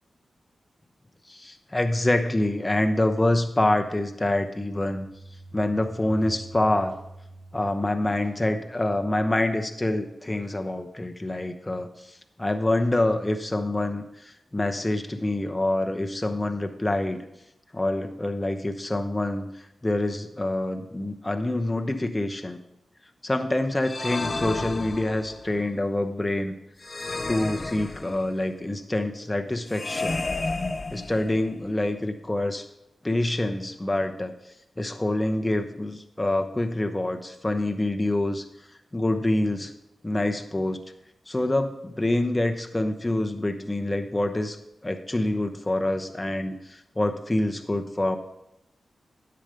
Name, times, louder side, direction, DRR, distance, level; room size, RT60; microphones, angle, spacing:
voice 1, 1.3-5.1 5.5-7.0 7.5-17.2 17.7-22.6 23.2-26.5 27.3-30.2 30.9-32.6 33.0-34.3 34.8-38.4 38.9-39.7 40.0-40.8 41.3-44.6 44.8-48.2, left 1 dB, 20° left, 6 dB, 0.9 m, -26 dB
sound 1, 3.6-9.2, right 2 dB, 85° right, 1.8 m, -47 dB
sound 2, 23.8-25.5 26.8-28.5 29.7-31.6, left 3 dB, 45° left, 0.6 m, -31 dB
9.8 x 6.9 x 5.2 m, 0.84 s
cardioid pair, 50°, 0 cm